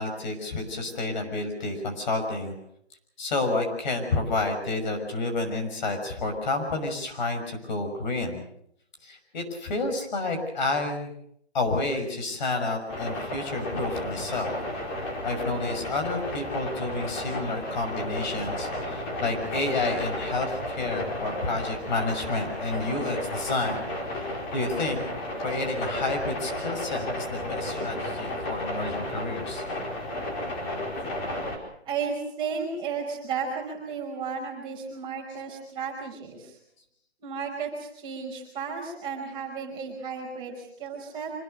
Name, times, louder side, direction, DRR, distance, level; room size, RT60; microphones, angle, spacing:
voice 1, 0.0-2.5 3.2-8.4 9.0-11.1 11.5-14.5 15.2-24.3 24.5-25.0 25.4-29.6, left 2 dB, 45° left, 4 dB, 6.1 m, -30 dB
sound 1, 12.9-31.6, left 1 dB, 20° left, 4.5 m, -33 dB
voice 2, 31.8-36.6 37.2-41.3, right 5 dB, 15° right, -1 dB, 5.1 m, -33 dB
26.0 x 20.5 x 6.6 m, 0.72 s
hypercardioid pair, 155°, 32 cm